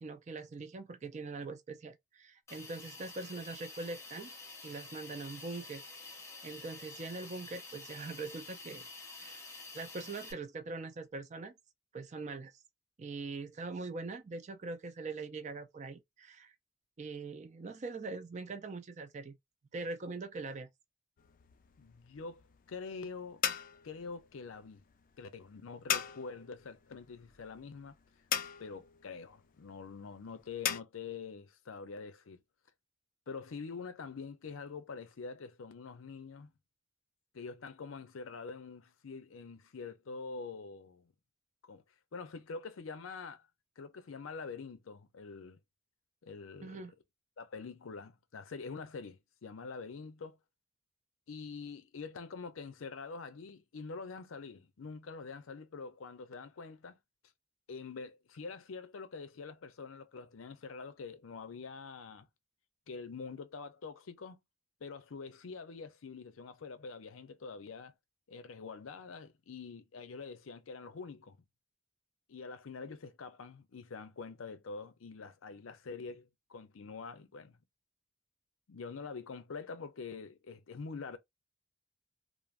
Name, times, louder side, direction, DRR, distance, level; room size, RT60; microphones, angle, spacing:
voice 1, 0.0-4.3 4.6-5.8 6.4-8.9 9.2-9.4 9.7-11.6 11.9-12.5 13.0-16.5 17.0-19.4 19.7-20.7 46.6-46.9, right 3 dB, 35° right, 0.4 m, -42 dB
Hiss, 2.5-10.3, left 3 dB, 15° left, 0.7 m, -49 dB
sound 1, 21.2-30.8, left 9 dB, 40° left, 0.3 m, -40 dB
voice 2, 21.8-23.4 23.8-24.9 25.2-28.0 28.6-32.4 33.3-36.5 37.3-41.1 41.7-41.8 42.1-43.4 43.8-45.6 46.2-46.9 47.4-50.4 51.3-57.0 57.7-62.3 62.9-64.4 64.8-67.9 68.3-71.4 72.3-77.6 78.7-81.2, left 4 dB, 90° left, 0.6 m, -45 dB
3.2 x 2.0 x 2.4 m
head